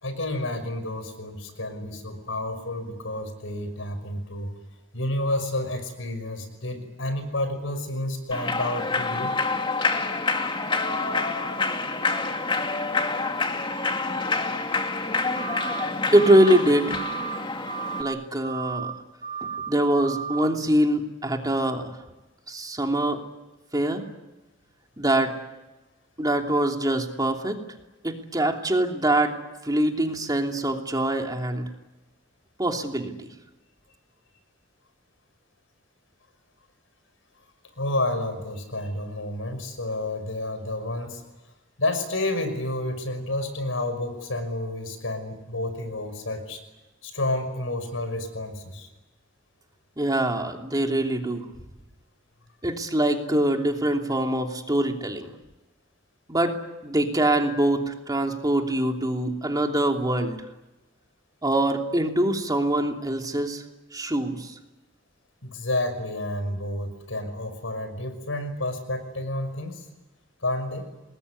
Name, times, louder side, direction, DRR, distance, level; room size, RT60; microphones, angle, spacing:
voice 1, 0.0-4.5 4.9-9.4 37.8-41.2 41.8-46.6 47.0-48.9 65.4-69.9 70.4-70.9, left 1 dB, 85° left, 9 dB, 5.9 m, -30 dB
Human voice / Clapping / Cheering, 8.3-18.0, left 3 dB, 25° left, 2.3 m, -27 dB
sound 1, 15.4-15.8 16.1-16.6 16.9-17.4 17.7-18.1 18.4-18.9 19.2-19.7 20.0-20.5, right 6 dB, 45° right, 2.6 m, -33 dB
voice 2, 16.1-17.0 18.0-18.9 19.7-21.9 22.5-23.2 23.7-24.0 25.0-25.4 26.2-27.6 28.0-29.4 29.6-31.7 32.6-33.3 50.0-51.4 52.6-55.3 56.3-56.5 56.8-60.4 61.4-63.6 63.9-64.5, right 1 dB, 20° right, 3 dB, 2.9 m, -23 dB
26.5 x 21.0 x 9.8 m, 1.1 s
head